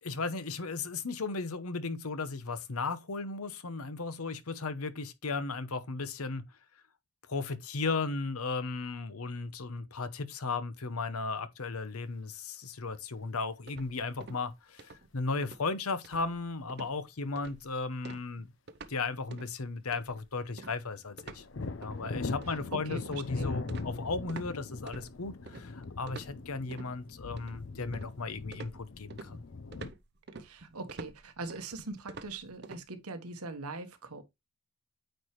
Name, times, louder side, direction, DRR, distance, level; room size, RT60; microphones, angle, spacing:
voice 1, 0.0-6.4 7.3-18.5 18.9-21.4 21.8-29.4, left 3 dB, 80° left, 0.9 m, -35 dB
sound 1, 13.7-14.5 14.8-15.1 15.4-15.7 16.0-16.4 16.7-17.0 17.4-17.7 18.0-19.0 19.3-19.5 19.9-24.5 24.9-25.6 26.1-26.9 27.4-28.2 28.5-32.8, right 3 dB, 50° right, 0.7 m, -48 dB
sound 2, 21.1-29.9, left 3 dB, 55° left, 0.6 m, -40 dB
voice 2, 22.5-23.7 30.4-34.2, right 3 dB, 90° right, 1.3 m, -42 dB
9.0 x 4.6 x 3.1 m
head